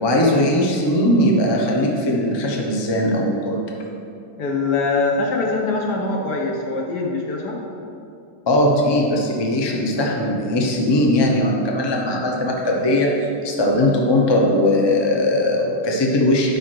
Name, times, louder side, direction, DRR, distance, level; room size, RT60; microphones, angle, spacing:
voice 1, 0.0-3.8 8.5-16.6, left 1 dB, 30° left, -1 dB, 0.4 m, -19 dB
voice 2, 4.4-7.6, left 3 dB, 60° left, -1 dB, 1.6 m, -23 dB
10.5 x 3.6 x 6.3 m, 2.7 s
omnidirectional pair, 2.1 m